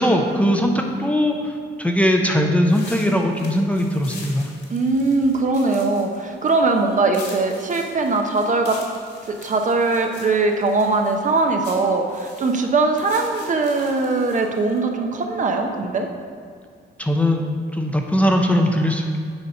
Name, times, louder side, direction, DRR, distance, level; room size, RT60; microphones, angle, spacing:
voice 1, 0.0-4.5 17.0-17.5 17.7-19.2, equal, 5° left, 2 dB, 0.6 m, -20 dB
sound 1, 2.7-14.8, left 3 dB, 60° left, 1.9 m, -43 dB
voice 2, 4.7-8.8 9.3-16.1, right 3 dB, 40° right, 3 dB, 0.8 m, -21 dB
8.1 x 4.2 x 5.3 m, 2.1 s
cardioid pair, 90°, 20 cm